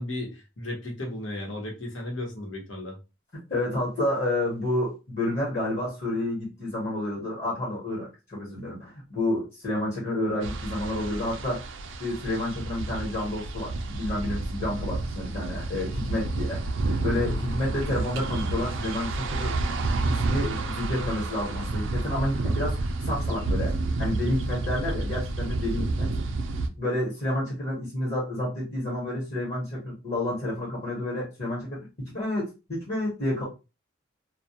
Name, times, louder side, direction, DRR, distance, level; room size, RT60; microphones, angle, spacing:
voice 1, 0.0-3.0, left 1 dB, 80° left, 0 dB, 1.0 m, -35 dB
voice 2, 3.5-11.7 12.0-16.6 17.0-19.6 20.1-22.8 23.1-23.7 24.0-26.1 26.8-33.4, left 1 dB, 45° left, -5 dB, 1.0 m, -30 dB
sound 1, 10.4-26.7, right 2 dB, 80° right, 0.4 m, -30 dB
2.2 x 2.2 x 2.8 m, 0.28 s
head